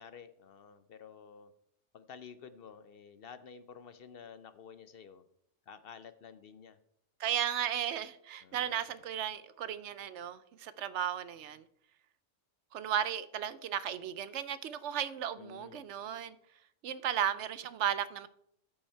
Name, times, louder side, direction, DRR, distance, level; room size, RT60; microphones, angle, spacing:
voice 1, 0.0-1.5 1.9-5.2 5.7-6.8 8.4-8.9 15.4-15.9, left 6 dB, 60° left, 0.7 m, -51 dB
voice 2, 7.2-11.6 12.7-16.3 16.8-18.3, right 10 dB, 75° right, 0.9 m, -35 dB
13.0 x 5.5 x 4.4 m
omnidirectional pair, 1.2 m